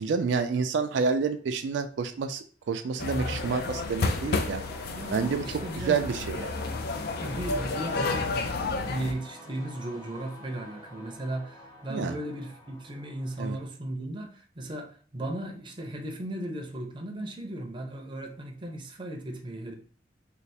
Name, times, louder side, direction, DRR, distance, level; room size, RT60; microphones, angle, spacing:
voice 1, 0.0-4.6 5.1-5.4 5.9-6.6 11.9-12.2 13.4-13.6, right 5 dB, 85° right, 0.4 m, -29 dB
sound 1, 2.6-13.7, left 1 dB, 20° left, 0.8 m, -48 dB
sound 2, 3.0-9.1, left 3 dB, 60° left, 0.4 m, -31 dB
voice 2, 4.9-6.0 7.2-8.3 8.8-19.7, right 1 dB, 25° right, 0.5 m, -36 dB
3.2 x 2.0 x 4.1 m
head